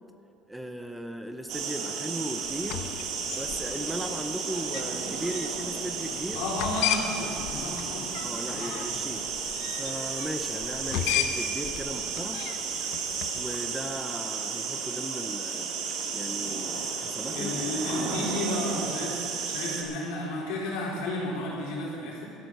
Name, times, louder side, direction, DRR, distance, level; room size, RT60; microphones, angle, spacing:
voice 1, 0.5-2.9 3.3-6.4 8.2-9.3 9.7-12.4 13.3-15.7 16.1-17.6, right 1 dB, 5° right, 6 dB, 0.5 m, -37 dB
sound 1, 1.5-19.8, right 5 dB, 60° right, 1.8 m, -33 dB
sound 2, 2.4-13.8, left 9 dB, 60° left, 0.8 m, -36 dB
voice 2, 6.3-8.1 8.4-9.1 17.3-22.2, left 1 dB, 80° left, -4 dB, 4.0 m, -33 dB
13.0 x 11.0 x 6.5 m, 2.8 s
cardioid pair, 180°, 0 cm